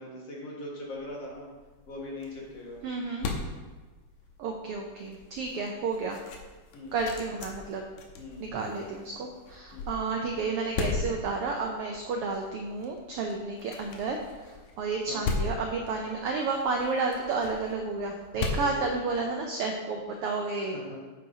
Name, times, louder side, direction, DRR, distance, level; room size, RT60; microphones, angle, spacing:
voice 1, 0.0-1.5 1.9-2.8 6.7-7.0 8.2-8.6 9.7-10.0 15.1-15.3 18.5-18.9 20.5-21.0, left 1 dB, 60° left, -4 dB, 2.6 m, -41 dB
sound 1, 0.9-19.7, left 4 dB, 75° left, 2.1 m, -39 dB
voice 2, 2.8-3.3 4.4-6.2 6.9-7.8 8.4-14.2 14.8-20.8, right 4 dB, 80° right, 2 dB, 1.3 m, -31 dB
9.4 x 7.8 x 2.8 m, 1.3 s
omnidirectional pair, 3.3 m